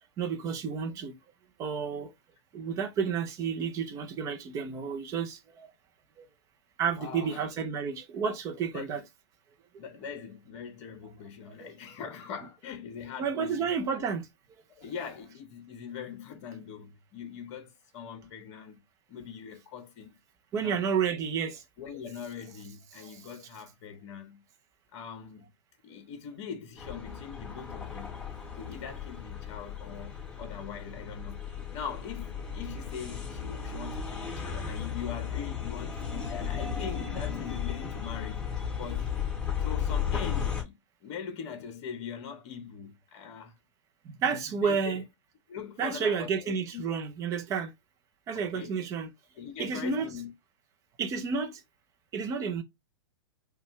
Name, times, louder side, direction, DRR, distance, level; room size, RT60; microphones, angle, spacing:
voice 1, 0.2-1.1 1.6-2.1 2.5-5.7 6.2-6.3 6.8-9.0 9.7-9.8 11.5-11.7 13.2-14.3 20.5-21.6 22.9-23.2 44.0-45.0 45.8-47.7 48.3-49.1 49.6-50.1 51.0-51.6 52.1-52.6, right 6 dB, 20° right, 0.7 m, -31 dB
voice 2, 7.0-7.4 8.7-8.9 9.8-13.7 14.7-18.8 19.1-20.1 20.6-20.8 21.8-24.4 24.9-25.5 25.8-28.2 28.5-38.5 38.7-39.1 39.6-43.5 44.6-45.0 45.5-46.8 48.5-48.8 49.3-50.3, left 7 dB, 40° left, 1.1 m, -42 dB
sound 1, 26.8-40.6, left 7 dB, 10° left, 2.5 m, -35 dB
5.2 x 2.4 x 3.2 m
hypercardioid pair, 145°, 15 cm